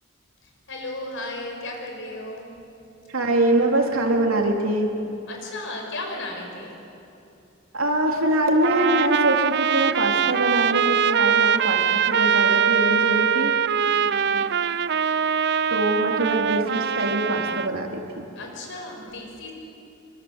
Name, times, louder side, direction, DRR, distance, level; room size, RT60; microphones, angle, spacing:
voice 1, 0.4-2.5 5.3-6.7 13.9-14.4 18.3-19.5, left 2 dB, 55° left, 1 dB, 6.3 m, -35 dB
voice 2, 3.1-4.9 7.7-13.6 15.7-18.3, right 1 dB, 65° right, 1 dB, 3.4 m, -23 dB
Trumpet, 8.6-17.7, right 7 dB, 50° right, 0.6 m, -22 dB
27.0 x 25.5 x 8.2 m, 2.7 s
head